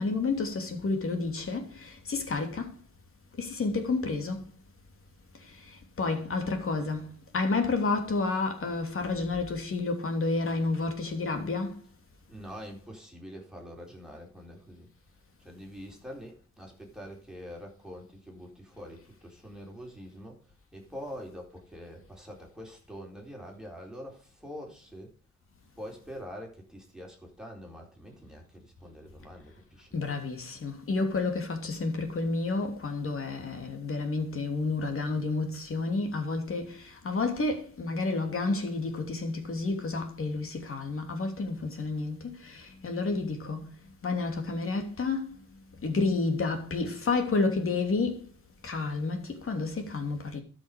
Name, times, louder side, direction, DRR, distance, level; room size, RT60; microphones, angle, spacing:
voice 1, 0.0-2.7 3.4-4.4 6.0-7.1 7.3-11.7 29.9-43.7 44.0-45.4 45.8-48.2 48.6-50.4, left 3 dB, 45° left, 2.9 m, -30 dB
voice 2, 12.3-14.9 15.4-25.1 25.8-30.0, equal, ahead, 4.0 m, -45 dB
12.5 x 6.4 x 5.2 m
cardioid pair, 75°, 29 cm